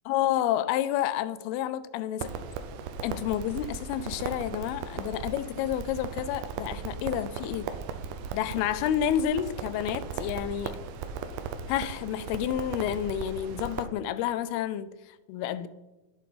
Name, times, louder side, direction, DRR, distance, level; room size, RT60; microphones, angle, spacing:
voice 1, 0.1-2.4 3.0-7.7 8.3-10.8 11.7-15.7, left 11 dB, 90° left, 2.5 m, -30 dB
Crackle, 2.2-13.9, right 6 dB, 80° right, 2.6 m, -37 dB
11.0 x 9.0 x 4.1 m
omnidirectional pair, 4.4 m